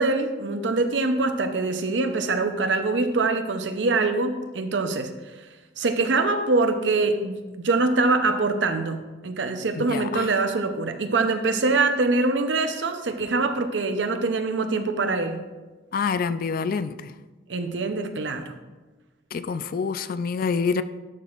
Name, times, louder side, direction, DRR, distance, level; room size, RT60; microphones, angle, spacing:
voice 1, 0.0-5.1 5.8-15.5 17.5-18.5, right 3 dB, 75° right, 8 dB, 0.7 m, -24 dB
voice 2, 9.8-10.3 15.9-17.1 19.3-20.8, left 5 dB, 50° left, 13 dB, 0.3 m, -27 dB
12.0 x 6.1 x 2.5 m, 1.2 s
head